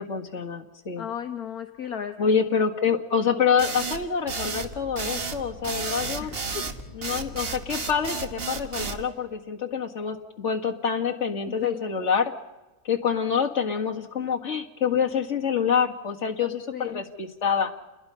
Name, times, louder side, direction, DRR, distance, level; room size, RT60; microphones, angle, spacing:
voice 1, 0.0-1.1 2.2-6.3 6.9-12.3 12.8-17.7, left 6 dB, 45° left, 2 dB, 2.1 m, -26 dB
voice 2, 1.0-2.1 2.4-2.6 6.2-6.7 11.6-11.8 16.7-17.0, left 8 dB, 65° left, 7 dB, 1.5 m, -35 dB
sound 1, 3.6-9.0, right 4 dB, 40° right, 1.4 m, -32 dB
sound 2, 4.2-9.4, left 1 dB, 15° left, 5.4 m, -46 dB
30.0 x 21.0 x 5.7 m, 1.1 s
omnidirectional pair, 1.7 m